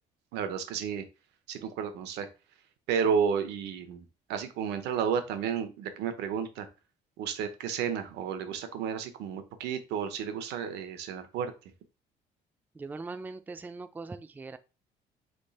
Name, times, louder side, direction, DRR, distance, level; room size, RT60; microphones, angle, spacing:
voice 1, 0.3-1.0 1.5-2.3 2.9-6.7 7.2-11.5, right 7 dB, 85° right, 0.9 m, -32 dB
voice 2, 12.7-14.6, right 3 dB, 10° right, 0.3 m, -41 dB
3.5 x 3.2 x 4.1 m
cardioid pair, 110°, 17 cm